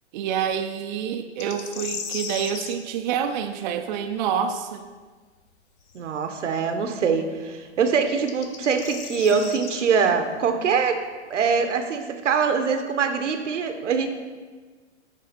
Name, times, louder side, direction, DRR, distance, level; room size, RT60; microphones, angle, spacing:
voice 1, 0.1-4.8, right 8 dB, 40° right, 6 dB, 0.4 m, -27 dB
sound 1, 1.4-2.8 5.9-6.0 8.1-9.8, left 6 dB, 25° left, 0.5 m, -35 dB
voice 2, 5.9-11.0 11.3-14.1, right 6 dB, 85° right, 6 dB, 0.9 m, -23 dB
9.7 x 3.5 x 4.2 m, 1.4 s
hypercardioid pair, 140°, 36 cm